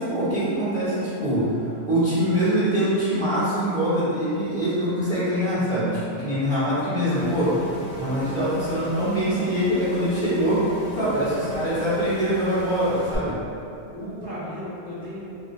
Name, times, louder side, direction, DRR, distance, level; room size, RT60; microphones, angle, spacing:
voice 1, 0.0-1.4 1.9-7.5 8.0-10.6 10.9-13.4, equal, 10° right, -14 dB, 1.3 m, -23 dB
sound 1, 7.1-13.1, equal, 70° left, 0.9 m, -38 dB
voice 2, 10.9-11.7 13.9-15.4, equal, 10° left, -15 dB, 1.2 m, -36 dB
3.6 x 2.7 x 2.7 m, 2.7 s
omnidirectional pair, 1.2 m